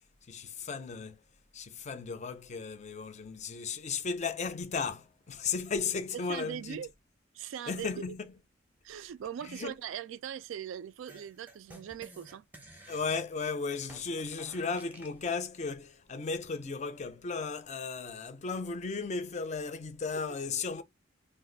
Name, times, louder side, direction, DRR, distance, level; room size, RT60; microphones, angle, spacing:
voice 1, 0.3-1.2 1.5-6.8 7.7-8.2 9.4-9.7 12.9-20.8, left 4 dB, 35° left, 0.5 m, -35 dB
voice 2, 6.3-6.9 7.3-8.0 8.8-12.5 20.1-20.2, right 9 dB, 80° right, 0.3 m, -40 dB
sound 1, 11.1-15.2, right 1 dB, 10° right, 0.6 m, -53 dB
2.5 x 2.3 x 3.8 m
head